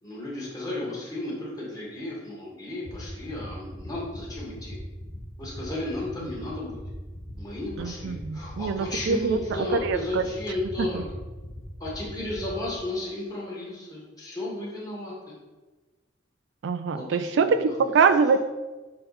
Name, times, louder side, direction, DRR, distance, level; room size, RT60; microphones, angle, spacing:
voice 1, 0.0-4.8 5.4-6.8 7.4-11.0 11.8-15.1 16.9-17.9, left 2 dB, 20° left, -5 dB, 1.8 m, -34 dB
sound 1, 2.8-12.7, equal, 45° left, 1.1 m, -39 dB
voice 2, 7.8-10.2 16.6-18.4, right 5 dB, 65° right, 10 dB, 0.3 m, -24 dB
6.7 x 3.8 x 4.2 m, 1.2 s
head